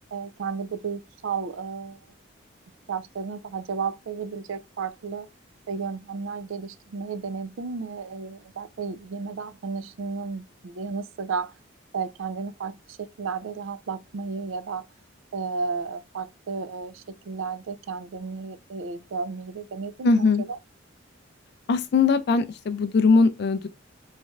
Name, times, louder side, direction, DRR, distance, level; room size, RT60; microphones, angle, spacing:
voice 1, 0.1-2.1 2.9-5.3 5.7-11.5 11.9-14.9 15.3-20.6, right 5 dB, 70° right, 0.4 m, -33 dB
voice 2, 20.0-20.4 21.7-23.7, left 4 dB, 50° left, 0.3 m, -20 dB
4.1 x 3.2 x 2.3 m
head